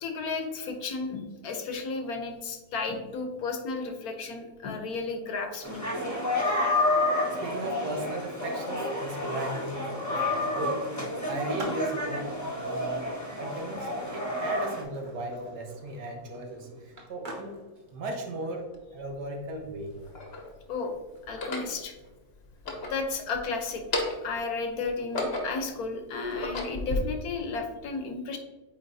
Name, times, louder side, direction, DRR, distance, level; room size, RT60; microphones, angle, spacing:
voice 1, 0.0-5.8 20.7-20.9 21.3-21.9 22.9-23.8 24.2-28.4, left 4 dB, 70° left, 5 dB, 1.3 m, -33 dB
sound 1, 5.6-14.8, left 1 dB, 10° left, 1.1 m, -30 dB
Skateboard, 7.2-22.1, right 1 dB, 35° right, 1.0 m, -49 dB
voice 2, 7.4-10.8 11.3-13.1 13.4-17.6 17.9-20.0, right 1 dB, 80° right, 2 dB, 1.6 m, -37 dB
sound 2, 18.7-18.8 19.7-20.5 21.2-21.8 22.5-23.4 23.8-24.4 24.8-25.7 26.2-27.0, left 2 dB, 45° left, 1.0 m, -33 dB
8.7 x 4.1 x 2.6 m, 1.2 s
omnidirectional pair, 1.7 m